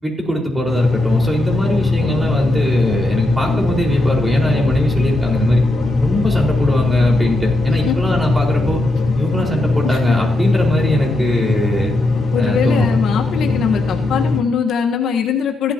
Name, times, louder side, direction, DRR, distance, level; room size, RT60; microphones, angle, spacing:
voice 1, 0.0-5.6 6.0-8.8 9.2-11.9 12.4-12.9, equal, 15° right, -1 dB, 4.7 m, -20 dB
sound 1, 0.7-14.4, left 3 dB, 40° left, 4.1 m, -19 dB
Aircraft, 1.4-10.8, left 4 dB, 55° left, 3.4 m, -30 dB
voice 2, 9.8-10.2 12.3-15.7, left 7 dB, 75° left, 3 dB, 1.4 m, -21 dB
16.0 x 12.5 x 2.9 m, 0.67 s
cardioid pair, 90°, 0 cm